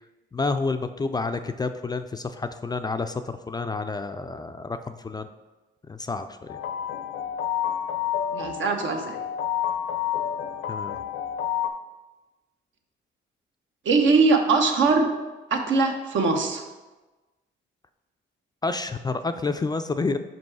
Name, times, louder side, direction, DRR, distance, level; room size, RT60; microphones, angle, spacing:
voice 1, 0.3-5.3 5.9-6.6 10.7-11.0 18.6-20.2, left 3 dB, 20° left, 9 dB, 0.3 m, -29 dB
sound 1, 6.5-11.7, left 9 dB, 80° left, 0.6 m, -29 dB
voice 2, 8.3-9.2 13.8-15.1 15.5-16.6, right 4 dB, 70° right, 3 dB, 1.0 m, -21 dB
5.4 x 5.2 x 4.7 m, 1.2 s
cardioid pair, 90°, 20 cm